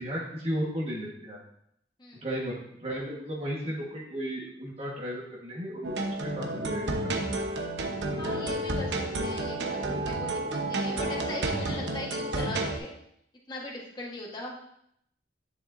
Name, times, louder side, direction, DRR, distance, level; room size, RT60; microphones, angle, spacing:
voice 1, 0.0-1.4 2.2-7.4 8.1-8.6, equal, 35° right, -4 dB, 1.4 m, -35 dB
sound 1, 5.8-12.8, right 1 dB, 75° right, 1.0 m, -31 dB
voice 2, 8.2-12.9 13.5-14.6, left 1 dB, 25° left, -2 dB, 1.4 m, -39 dB
10.0 x 7.0 x 2.6 m, 0.74 s
head